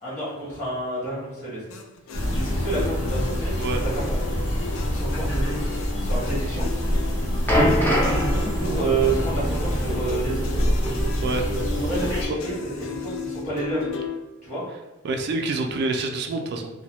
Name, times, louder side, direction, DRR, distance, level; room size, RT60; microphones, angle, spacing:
voice 1, 0.0-1.6 2.3-3.6 3.9-4.3 4.9-5.6 5.9-6.7 7.5-7.7 8.0-10.5 11.7-13.9 14.4-14.6, right 3 dB, 35° left, -8 dB, 1.5 m, -29 dB
sound 1, 1.7-14.2, left 5 dB, 90° left, 0.4 m, -35 dB
sound 2, 2.1-12.3, equal, 65° left, 0.8 m, -26 dB
sound 3, 7.5-11.8 12.0-12.2 12.9-13.0, equal, 10° left, 0.5 m, -26 dB
voice 2, 11.2-11.9 12.3-12.4 15.0-16.7, right 3 dB, 55° right, 4 dB, 0.3 m, -27 dB
2.7 x 2.1 x 3.0 m, 1.1 s
head